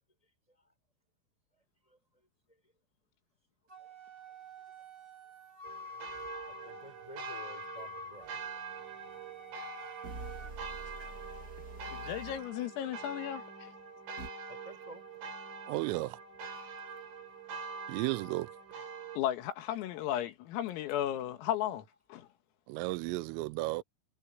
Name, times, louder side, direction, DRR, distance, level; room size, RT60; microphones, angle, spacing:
Wind instrument woodwind instrument, 3.7-10.5, equal, 30° right, 6.3 m, -49 dB
sound 1, 5.6-19.2, right 4 dB, 70° right, 8.0 m, -44 dB
voice 1, 6.5-8.4 14.5-15.1, right 1 dB, 5° left, 7.2 m, -51 dB
sound 2, 8.2-8.3 10.0-12.5 14.2-14.3, right 2 dB, 45° right, 1.1 m, -46 dB
voice 2, 11.9-13.7 19.2-21.9 22.1-22.3, left 12 dB, 85° left, 4.5 m, -35 dB
voice 3, 15.7-16.2 17.9-18.5 22.7-23.8, right 20 dB, 85° right, 3.2 m, -33 dB
omnidirectional pair, 6.0 m